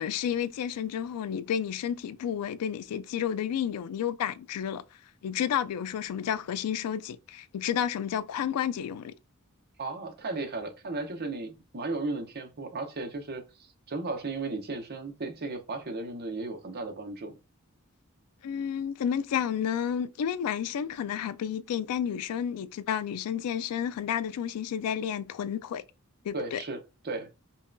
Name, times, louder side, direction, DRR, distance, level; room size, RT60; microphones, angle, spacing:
voice 1, 0.0-4.8 5.2-9.1 18.4-25.8 26.2-26.6, left 9 dB, 90° left, 0.3 m, -31 dB
voice 2, 9.8-17.4 26.3-26.8 27.0-27.3, right 3 dB, 45° right, 0.7 m, -35 dB
5.3 x 2.3 x 2.5 m
head